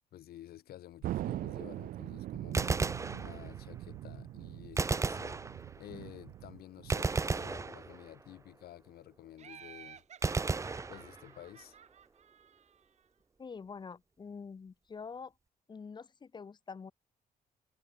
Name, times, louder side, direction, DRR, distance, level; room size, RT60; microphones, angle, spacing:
voice 1, 0.1-5.4 5.8-10.0 10.9-11.8, left 13 dB, 90° left, 4.4 m, -52 dB
Thunder, 1.0-7.9, right 14 dB, 65° right, 0.4 m, -42 dB
Gunshot gunfire, 2.4-3.8 4.8-6.0 6.9-8.3 10.2-11.6, right 4 dB, 20° right, 1.3 m, -34 dB
Laughter, 9.4-13.0, right 8 dB, 45° right, 4.5 m, -54 dB
voice 2, 13.4-15.3 15.7-16.9, left 5 dB, 30° left, 4.7 m, -46 dB
cardioid pair, 165°, 16 cm